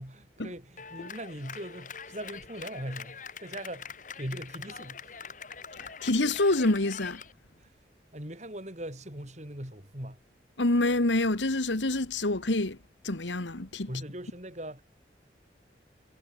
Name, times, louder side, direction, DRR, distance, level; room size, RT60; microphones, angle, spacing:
voice 1, 0.0-5.2 7.6-7.8 8.1-10.2 13.9-14.8, right 1 dB, 40° right, 8.0 m, -40 dB
Clapping, 0.8-7.3, left 6 dB, 45° left, 7.7 m, -44 dB
voice 2, 5.8-7.2 10.6-12.8 13.0-13.9, left 2 dB, 85° left, 1.9 m, -27 dB
head